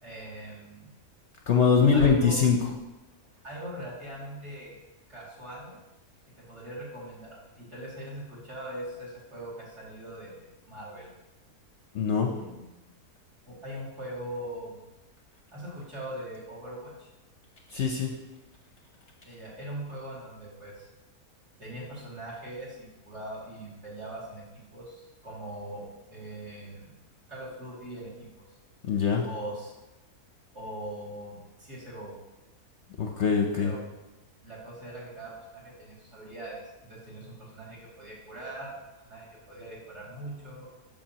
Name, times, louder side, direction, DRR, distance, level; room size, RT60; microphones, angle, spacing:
voice 1, 0.0-0.9 1.9-2.4 3.4-4.8 5.1-5.8 6.4-11.1 12.3-12.8 13.5-14.8 15.5-17.1 19.2-20.9 21.6-27.0 27.3-28.5 29.2-29.7 30.5-32.1 33.5-33.8 34.4-38.7 39.0-40.7, right 1 dB, 50° right, -7 dB, 2.8 m, -41 dB
voice 2, 1.5-2.6 11.9-12.3 17.7-18.1 28.9-29.2 33.0-33.7, left 6 dB, 60° left, 2 dB, 0.8 m, -22 dB
13.0 x 5.3 x 2.9 m, 1.0 s
omnidirectional pair, 1.6 m